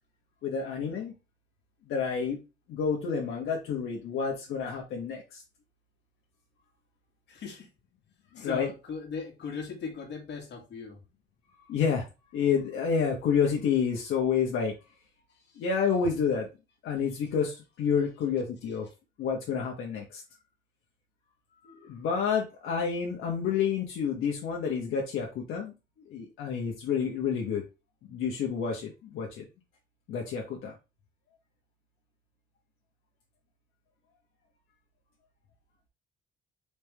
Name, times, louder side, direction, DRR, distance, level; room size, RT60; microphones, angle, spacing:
voice 1, 0.4-1.1 1.9-2.4 2.7-5.4 8.3-8.7 11.7-12.1 12.3-14.7 15.6-16.5 16.8-18.9 19.2-20.2 21.6-25.7 26.1-27.6 28.0-29.4 30.1-30.7, left 6 dB, 80° left, 1.1 m, -29 dB
voice 2, 7.3-7.7 8.4-11.0, left 5 dB, 60° left, 1.7 m, -38 dB
4.3 x 3.4 x 3.3 m
cardioid pair, 90°, 20 cm